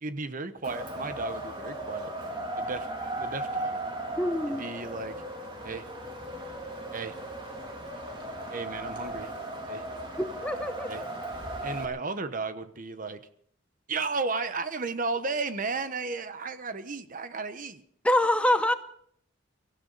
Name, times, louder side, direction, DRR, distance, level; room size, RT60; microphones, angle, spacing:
voice 1, 0.0-2.1 2.6-2.9 3.2-3.8 4.5-5.2 5.6-5.8 6.9-7.2 8.5-9.3 9.7-9.8 10.9-11.0 11.6-13.2 13.9-17.8, right 4 dB, 45° right, 11 dB, 1.1 m, -34 dB
Wind, 0.6-11.8, right 1 dB, 25° right, 3.1 m, -37 dB
voice 2, 4.2-4.6 10.2-11.1 18.0-18.7, left 1 dB, 5° left, 9 dB, 0.7 m, -25 dB
23.5 x 15.0 x 4.1 m, 0.63 s
head